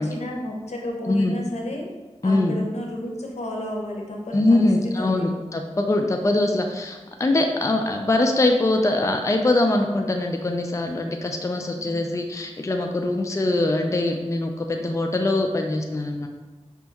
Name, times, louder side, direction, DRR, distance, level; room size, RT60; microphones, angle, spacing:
voice 1, 0.0-1.9 2.2-5.3 11.8-12.1, left 1 dB, 80° left, 0 dB, 0.8 m, -32 dB
voice 2, 2.2-2.5 4.3-16.3, left 2 dB, 25° left, 3 dB, 0.4 m, -22 dB
5.2 x 2.9 x 3.5 m, 1.2 s
wide cardioid pair, 50°, 11 cm